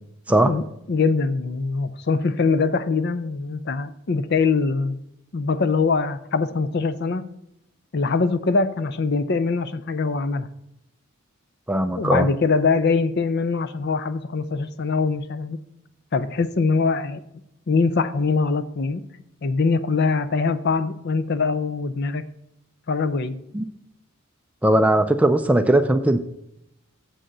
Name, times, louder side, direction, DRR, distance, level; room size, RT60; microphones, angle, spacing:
voice 1, 0.4-5.0 5.3-7.3 7.9-10.5 12.0-15.6 16.1-17.2 17.7-19.0 19.4-22.3 22.9-23.3, left 4 dB, 50° left, 13 dB, 0.5 m, -23 dB
voice 2, 11.7-12.3 23.5-23.6 24.6-26.2, right 1 dB, 5° right, 8 dB, 0.3 m, -18 dB
7.7 x 6.3 x 6.6 m, 0.82 s
head